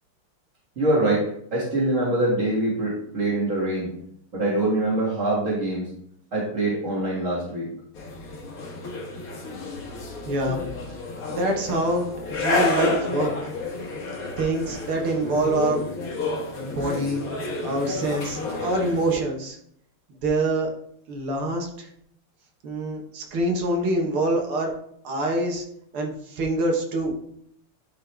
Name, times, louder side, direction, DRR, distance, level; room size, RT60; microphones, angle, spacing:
voice 1, 0.8-3.9 4.3-5.9 6.3-7.7, right 1 dB, 35° right, -7 dB, 2.1 m, -24 dB
sound 1, 8.0-19.2, left 3 dB, 45° left, 1.5 m, -30 dB
voice 2, 10.3-10.7 11.3-13.3 14.4-15.8 16.7-17.2 17.6-19.6 20.2-20.7 21.1-21.9 22.6-24.7 25.0-25.6 25.9-27.1, right 1 dB, 75° right, 1 dB, 2.1 m, -25 dB
12.0 x 3.9 x 3.3 m, 0.71 s
omnidirectional pair, 2.4 m